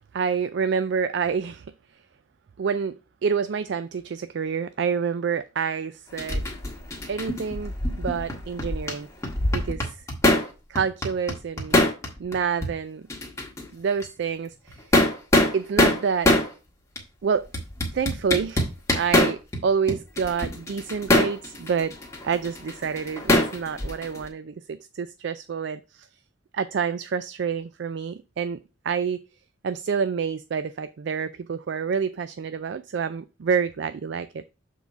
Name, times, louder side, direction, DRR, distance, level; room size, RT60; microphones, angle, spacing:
voice 1, 0.0-1.7 2.6-6.4 7.1-9.1 9.5-10.0 10.7-11.8 12.2-13.0 13.7-15.0 15.5-16.4 17.2-17.4 17.9-18.7 19.0-21.9 22.2-26.1 26.5-28.6 28.8-29.2 29.6-34.4, right 6 dB, 60° right, 0.4 m, -28 dB
sound 1, 6.2-9.0 9.2-10.5 10.8-12.4 12.6-12.7 13.1-13.7 14.0-14.1 14.7-16.5 17.0-17.1 17.5-19.6 19.9-24.2, left 1 dB, 15° left, 1.5 m, -23 dB
7.2 x 4.0 x 4.5 m
head